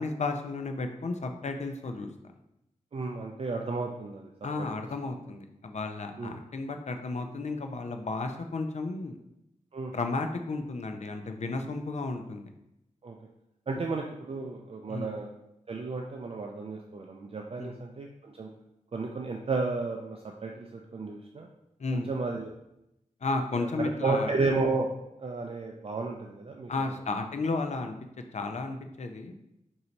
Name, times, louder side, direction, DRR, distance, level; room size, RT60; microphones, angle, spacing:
voice 1, 0.0-2.1 4.4-9.2 9.9-12.5 14.9-15.1 17.6-17.8 21.8-22.1 23.2-24.3 26.7-28.0 28.3-29.3, left 3 dB, 55° left, 5 dB, 0.5 m, -33 dB
voice 2, 2.9-4.3 4.6-4.7 6.2-6.3 9.7-9.9 13.0-13.2 13.7-15.3 15.7-18.5 18.9-21.5 21.9-22.5 23.6-24.9 25.2-26.9, right 3 dB, 45° right, 1 dB, 0.4 m, -33 dB
3.9 x 2.7 x 4.4 m, 0.86 s
wide cardioid pair, 80°, 14 cm